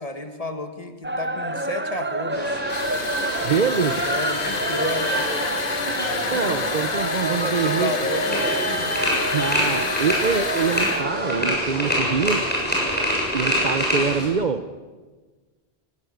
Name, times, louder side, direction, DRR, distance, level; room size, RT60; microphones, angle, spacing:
voice 1, 0.0-2.6 4.0-5.1 7.3-9.0, left 2 dB, 35° left, 6 dB, 1.8 m, -32 dB
sound 1, 1.0-11.6, right 2 dB, 15° right, 0.5 m, -28 dB
sound 2, 2.3-14.3, equal, 10° left, 7.1 m, -27 dB
sound 3, 2.7-11.1, left 6 dB, 55° left, 1.1 m, -30 dB
voice 2, 3.4-4.0 5.8-7.9 9.3-12.4 13.3-14.6, right 5 dB, 45° right, 11 dB, 0.8 m, -25 dB
19.5 x 17.5 x 7.9 m, 1.4 s
omnidirectional pair, 1.1 m